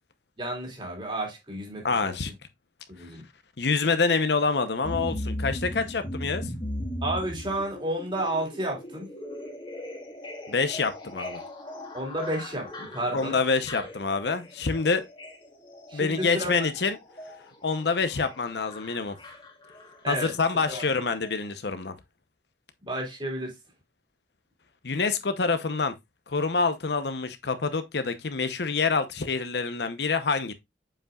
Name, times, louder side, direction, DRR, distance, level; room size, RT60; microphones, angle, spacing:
voice 1, 0.4-2.3 2.9-3.3 7.0-9.1 11.9-13.4 13.8-13.9 15.9-16.7 20.0-20.3 20.7-20.8 22.8-23.6, right 1 dB, 30° right, 2.7 m, -32 dB
voice 2, 1.8-2.3 3.6-6.5 10.5-11.4 13.1-15.1 15.9-17.0 17.6-19.2 20.1-21.9 24.8-25.9 26.3-30.5, left 4 dB, 65° left, 0.8 m, -26 dB
sound 1, 4.8-21.0 21.2-21.3, left 1 dB, 30° left, 1.6 m, -38 dB
7.5 x 5.3 x 2.4 m
head